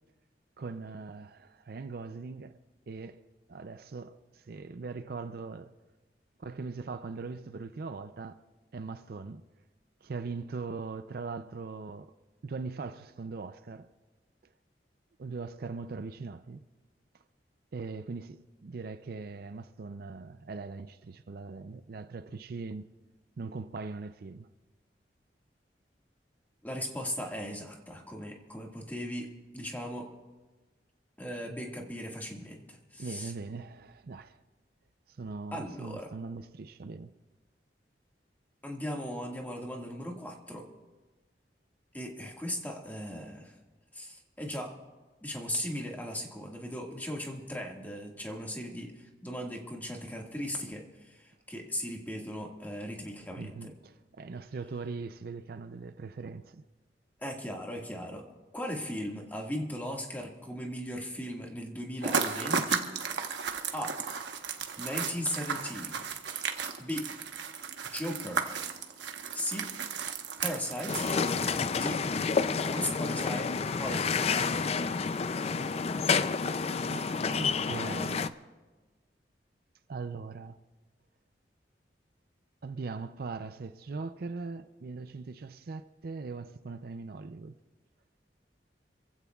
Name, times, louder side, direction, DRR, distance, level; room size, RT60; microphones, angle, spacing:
voice 1, 0.6-2.6 2.9-3.2 3.5-5.7 6.4-8.4 8.7-9.5 10.0-12.1 12.4-13.9 15.2-16.6 17.7-22.9 23.4-24.5 33.0-34.4 35.1-37.1 53.4-56.7 76.9-78.4 79.9-80.6 82.6-87.6, right 4 dB, 60° right, 0.5 m, -40 dB
voice 2, 26.6-30.1 31.2-33.3 35.5-36.1 38.6-40.7 41.9-43.5 43.9-44.8 45.2-53.7 57.2-58.2 58.5-62.9 63.7-64.0 64.8-66.0 66.8-67.1 67.8-68.5 69.3-69.7 70.4-71.1 71.7-72.0 72.6-74.3, equal, 10° left, 1.8 m, -37 dB
sound 1, 62.0-71.8, right 6 dB, 90° right, 1.1 m, -34 dB
sound 2, 70.9-78.3, left 5 dB, 35° left, 0.4 m, -29 dB
27.0 x 15.5 x 2.4 m
head